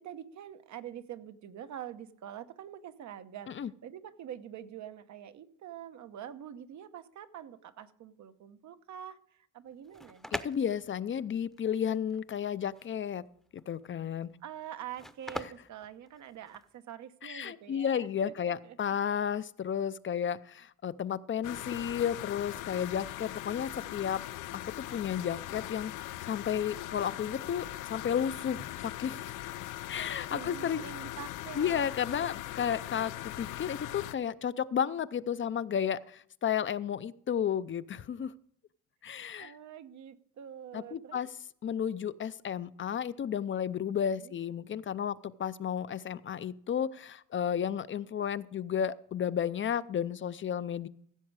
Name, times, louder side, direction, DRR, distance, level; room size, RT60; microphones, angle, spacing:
voice 1, 0.0-10.3 14.4-18.8 30.3-31.9 39.4-41.2 43.8-44.4, right 10 dB, 70° right, 10 dB, 1.0 m, -45 dB
sound 1, 9.7-16.8, equal, ahead, 0.8 m, -44 dB
voice 2, 10.3-13.2 13.5-14.3 17.2-24.2 24.5-24.6 24.9-29.3 29.9-30.8 31.6-38.3 39.0-39.5 40.7-41.3 41.6-50.9, left 8 dB, 40° left, 15 dB, 0.5 m, -33 dB
sound 2, 21.4-34.1, left 15 dB, 85° left, 0.5 m, -40 dB
15.5 x 7.1 x 4.8 m, 0.65 s
cardioid pair, 90°, 30 cm